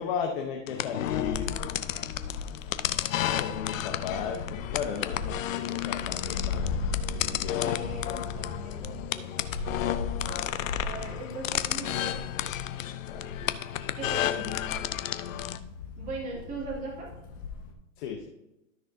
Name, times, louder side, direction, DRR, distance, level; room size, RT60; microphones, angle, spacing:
voice 1, 0.0-1.6 3.4-7.7 8.2-8.6 13.1-13.2 18.0-18.3, left 7 dB, 40° left, 2 dB, 0.9 m, -36 dB
sound 1, 0.7-15.6, left 12 dB, 70° left, 0.7 m, -32 dB
sound 2, 1.0-17.7, left 4 dB, 15° left, 0.4 m, -38 dB
voice 2, 7.6-9.3 10.8-12.3 12.7-12.8 14.0-14.6 16.0-17.1, right 2 dB, 20° right, -5 dB, 2.7 m, -39 dB
13.0 x 6.2 x 2.7 m, 0.94 s
hypercardioid pair, 150°, 41 cm